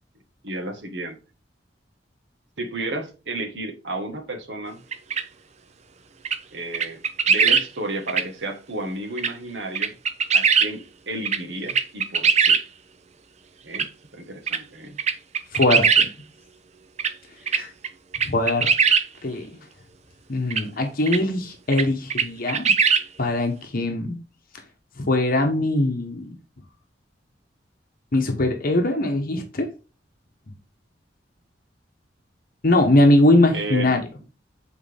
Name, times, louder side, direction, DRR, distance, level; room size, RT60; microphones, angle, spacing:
voice 1, 0.4-1.2 2.6-4.8 6.5-7.0 7.3-9.9 10.3-12.6 13.6-15.0 33.5-34.0, right 2 dB, 75° right, 1.5 m, -32 dB
sound 1, 4.9-5.2 6.2-6.4 6.7-7.6 8.1-8.2 9.2-9.3 9.7-10.7 11.2-11.4 11.7-12.6 13.7-13.9 14.5-14.6 15.0-16.1 17.0-17.1 17.5-17.9 18.1-19.0 20.5-20.6 21.1-21.2 21.7-21.8 22.1-23.0, right 6 dB, 40° right, 0.6 m, -20 dB
voice 2, 15.5-16.1 17.5-17.7 18.3-18.7 19.2-19.5 20.3-22.7 23.2-24.2 25.0-26.4 28.1-29.7 32.6-34.0, left 1 dB, 50° left, 1.1 m, -21 dB
7.9 x 4.4 x 3.5 m
head